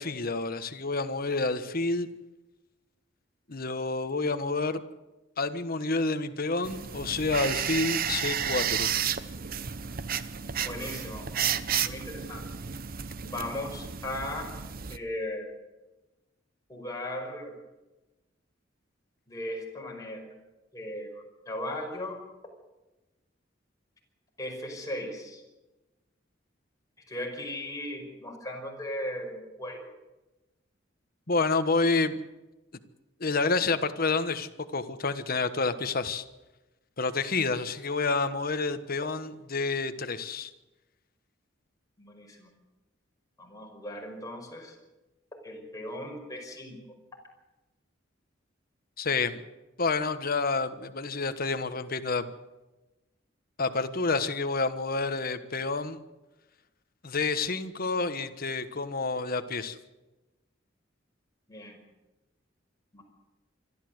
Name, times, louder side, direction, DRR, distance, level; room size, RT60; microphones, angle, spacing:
voice 1, 0.0-2.1 3.5-4.8 5.4-8.9 31.3-32.2 33.2-36.2 37.0-40.5 49.0-49.4 49.8-52.3 53.6-56.0 57.0-59.8, left 3 dB, 50° left, 10 dB, 1.3 m, -29 dB
sound 1, 6.6-15.0, right 8 dB, 50° right, 0.8 m, -32 dB
voice 2, 10.6-11.5 11.8-12.4 13.2-14.5 14.9-15.5 16.7-17.5 19.3-20.2 20.7-22.2 24.4-25.4 27.1-29.9 42.0-42.5 43.4-44.8 45.4-46.8 61.5-61.8 62.9-63.0, left 1 dB, 20° left, 0 dB, 5.3 m, -37 dB
26.0 x 13.0 x 7.9 m, 1.1 s
head